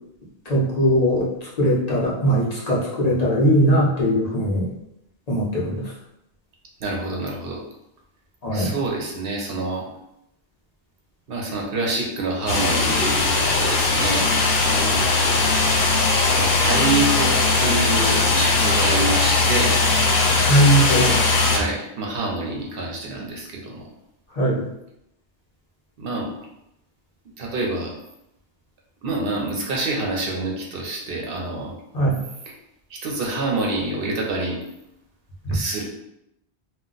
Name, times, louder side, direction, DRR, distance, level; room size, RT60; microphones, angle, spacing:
voice 1, 0.5-1.3 1.6-4.7 5.3-5.8 8.4-8.8 20.4-21.1 24.4-24.7 31.9-32.2 35.4-35.6, right 1 dB, 40° left, -5 dB, 0.9 m, -20 dB
voice 2, 6.8-7.6 8.5-9.9 11.3-14.3 14.6-15.1 16.4-19.8 21.5-23.8 26.0-26.3 27.4-27.9 29.0-31.7 32.9-34.6 35.5-35.8, right 2 dB, 60° right, -1 dB, 0.9 m, -27 dB
sound 1, 12.5-21.6, left 3 dB, 70° left, 0.8 m, -19 dB
2.4 x 2.2 x 3.8 m, 0.82 s
omnidirectional pair, 1.1 m